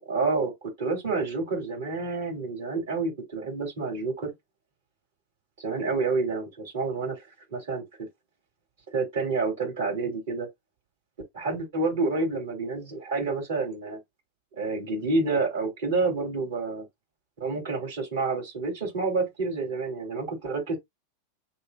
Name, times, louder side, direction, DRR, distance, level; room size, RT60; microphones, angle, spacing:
voice 1, 0.1-4.3 5.6-7.2 7.5-8.1 8.9-10.5 11.3-14.0 14.6-16.8 17.4-20.8, right 3 dB, 55° right, 3.0 m, -28 dB
6.6 x 2.6 x 2.4 m
figure-of-eight pair, 90°, 0 cm